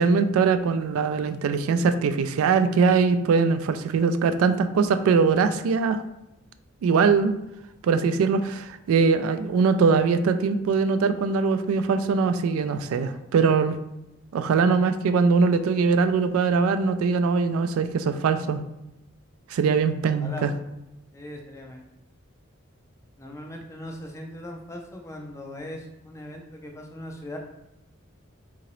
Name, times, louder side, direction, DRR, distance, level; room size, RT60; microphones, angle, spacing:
voice 1, 0.0-6.0 6.8-7.4 7.8-13.8 14.3-18.6 19.5-20.5, right 5 dB, 90° right, 13 dB, 0.3 m, -22 dB
voice 2, 20.2-20.6 21.1-21.8 23.2-27.4, left 1 dB, 15° left, 2 dB, 0.3 m, -39 dB
3.7 x 2.8 x 3.0 m, 0.91 s
head